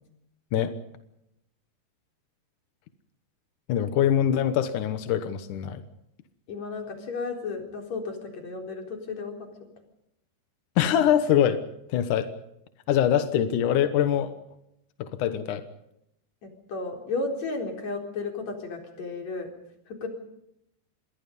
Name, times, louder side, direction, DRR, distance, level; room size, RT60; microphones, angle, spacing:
voice 1, 3.7-5.8 10.8-11.6 11.9-12.3 12.9-14.3 15.0-15.6, left 10 dB, 75° left, 9 dB, 1.8 m, -23 dB
voice 2, 6.5-9.5 16.4-19.5 20.0-20.1, left 3 dB, 40° left, 2 dB, 4.9 m, -33 dB
27.5 x 22.0 x 5.3 m, 0.81 s
omnidirectional pair, 5.3 m